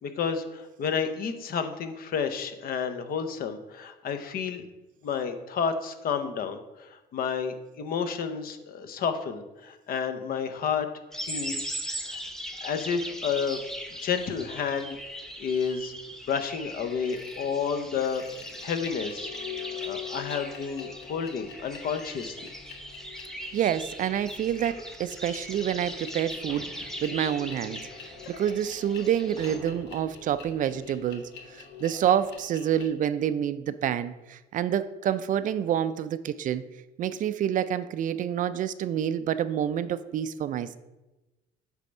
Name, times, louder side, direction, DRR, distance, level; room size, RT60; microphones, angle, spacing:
voice 1, 0.0-4.6 5.0-10.9 11.1-11.7 12.0-12.2 12.6-13.6 14.0-15.0 15.4-15.9 16.3-18.2 18.6-19.3 19.8-22.5, left 6 dB, 60° left, 8 dB, 0.8 m, -30 dB
sound 1, 11.1-29.6, equal, 5° left, 0.9 m, -40 dB
sound 2, 17.1-17.4 18.0-32.9, left 8 dB, 80° left, 1.4 m, -44 dB
voice 2, 23.5-27.8 28.3-31.2 31.5-36.6 37.0-40.8, right 10 dB, 50° right, 13 dB, 0.4 m, -28 dB
sound 3, 26.5-28.4 29.4-31.3, left 1 dB, 35° left, 1.6 m, -51 dB
8.2 x 3.5 x 5.3 m, 1.0 s
cardioid pair, 110°, 17 cm